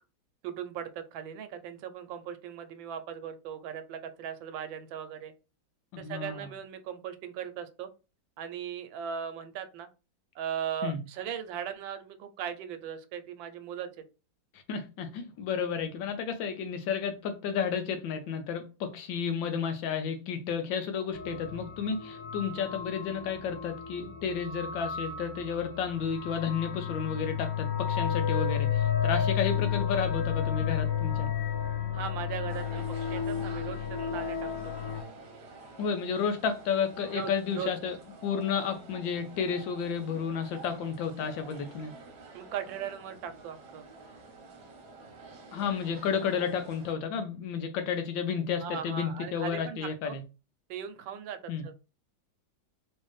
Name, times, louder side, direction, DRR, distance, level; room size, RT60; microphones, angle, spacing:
voice 1, 0.4-5.3 6.0-7.9 8.4-9.9 10.3-13.9 31.9-34.7 37.1-37.7 42.3-43.8 48.6-50.2 50.7-51.7, right 8 dB, 85° right, 1.3 m, -38 dB
voice 2, 5.9-6.5 10.8-11.0 14.7-31.3 35.8-38.0 38.2-41.9 45.5-50.2 51.5-51.6, left 6 dB, 80° left, 1.4 m, -32 dB
sound 1, 21.1-35.0, left 8 dB, 65° left, 0.9 m, -32 dB
Torino Lingotto centro commerciale., 32.5-46.9, right 3 dB, 60° right, 1.1 m, -49 dB
3.2 x 3.1 x 3.1 m
omnidirectional pair, 2.0 m